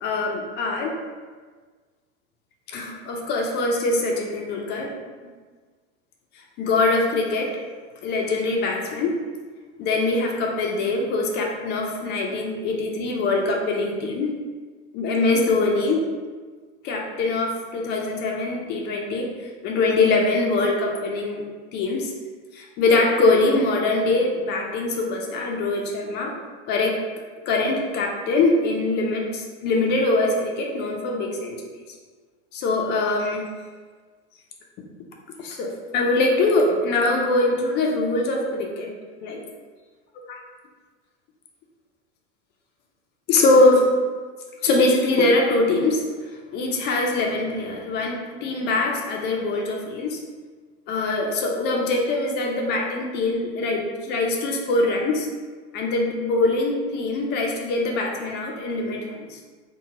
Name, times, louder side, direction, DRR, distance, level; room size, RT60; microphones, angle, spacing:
voice 1, 0.0-1.0 2.7-4.9 6.6-7.6 8.0-9.2 9.8-14.4 14.9-16.1 16.8-19.3 19.6-21.4 21.7-22.1 22.5-26.3 26.7-27.0 27.5-31.6 32.5-33.5 35.4-38.9 39.2-39.4 43.3-43.9 44.6-46.1 46.5-50.2 50.9-55.3 55.7-59.4, left 2 dB, 30° left, 1 dB, 0.4 m, -23 dB
2.8 x 2.2 x 3.9 m, 1.5 s
supercardioid pair, 140°, 34 cm